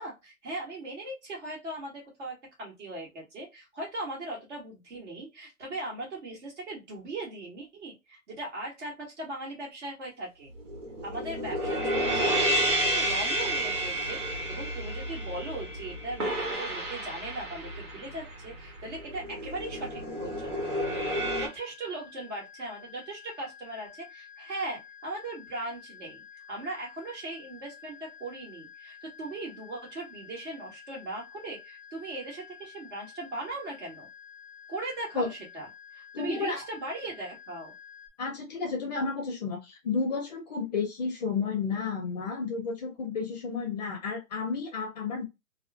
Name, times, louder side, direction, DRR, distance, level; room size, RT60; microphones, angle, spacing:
voice 1, 0.0-10.5 11.0-20.6 21.4-34.1 34.7-37.7, right 2 dB, 50° right, -1 dB, 2.0 m, -39 dB
sound 1, 10.6-21.5, right 1 dB, 70° right, 1.5 m, -31 dB
sound 2, 19.0-38.1, left 8 dB, 30° right, 1.4 m, -51 dB
voice 2, 36.1-36.6 38.2-45.3, left 5 dB, 30° left, 1 dB, 0.6 m, -32 dB
3.5 x 2.4 x 2.3 m, 0.22 s
hypercardioid pair, 145°, 45 cm